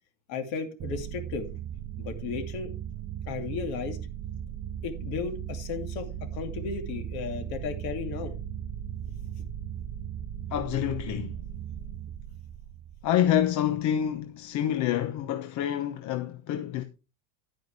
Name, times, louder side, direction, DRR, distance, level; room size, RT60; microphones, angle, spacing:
voice 1, 0.3-1.5 2.0-2.7 3.3-4.0 4.8-8.3 9.4-9.5, left 5 dB, 60° left, 2.7 m, -35 dB
sound 1, 0.8-13.7, right 10 dB, 30° right, 0.5 m, -37 dB
voice 2, 10.5-11.3 13.0-16.8, left 10 dB, 45° left, 1.0 m, -27 dB
11.0 x 9.2 x 3.3 m
supercardioid pair, 145°, 41 cm